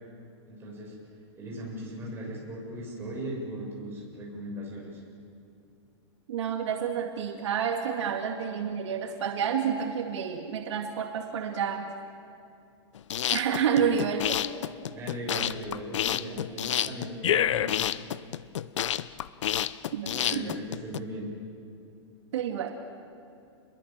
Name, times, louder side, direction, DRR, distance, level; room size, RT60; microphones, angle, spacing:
voice 1, 0.5-1.0 1.4-5.0 14.9-17.9 20.2-21.3, equal, 15° right, -3 dB, 7.1 m, -38 dB
voice 2, 6.3-11.9 13.3-14.4 19.9-20.6 22.3-22.8, right 7 dB, 70° right, 3 dB, 2.2 m, -29 dB
sound 1, 13.0-21.0, left 11 dB, 80° left, 0.8 m, -29 dB
29.0 x 22.5 x 7.5 m, 2.6 s
supercardioid pair, 165°, 15 cm